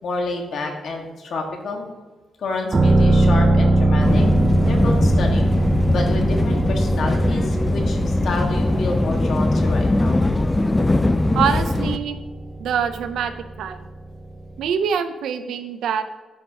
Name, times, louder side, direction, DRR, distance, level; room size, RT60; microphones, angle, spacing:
voice 1, 0.0-1.9 2.4-4.2 4.7-5.5 5.9-10.2, left 3 dB, 60° left, 2 dB, 1.6 m, -29 dB
sound 1, 2.7-14.3 14.6-14.7, right 1 dB, 25° right, 0.6 m, -21 dB
sound 2, 4.0-12.0, left 2 dB, 15° left, 0.3 m, -21 dB
voice 2, 11.3-12.2 12.6-13.8 14.6-16.0, right 7 dB, 85° right, 10 dB, 0.6 m, -24 dB
10.0 x 5.5 x 2.8 m, 1.3 s
cardioid pair, 130°, 0 cm